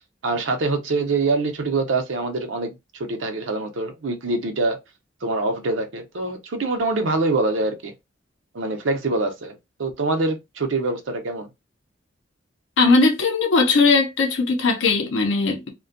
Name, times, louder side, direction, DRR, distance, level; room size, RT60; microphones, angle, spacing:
voice 1, 0.2-4.8 5.2-7.9 8.5-11.5, right 3 dB, 90° right, 0.6 m, -25 dB
voice 2, 12.8-15.7, left 3 dB, 85° left, 0.6 m, -19 dB
2.5 x 2.2 x 2.4 m
head